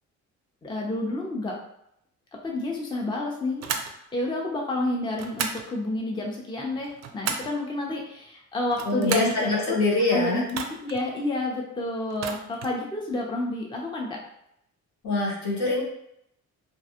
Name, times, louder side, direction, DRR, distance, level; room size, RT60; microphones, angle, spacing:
voice 1, 0.6-1.6 2.4-3.6 4.1-9.8 10.1-14.2, left 2 dB, 15° left, -1 dB, 0.5 m, -29 dB
sound 1, 3.6-3.9 5.2-5.7 6.7-7.6 8.6-9.4 10.5-11.0 12.1-12.8, right 6 dB, 60° right, 0.4 m, -33 dB
voice 2, 8.9-10.4 15.0-15.8, left 2 dB, 70° left, -3 dB, 1.0 m, -24 dB
2.5 x 2.2 x 2.7 m, 0.76 s
cardioid pair, 90°, 30 cm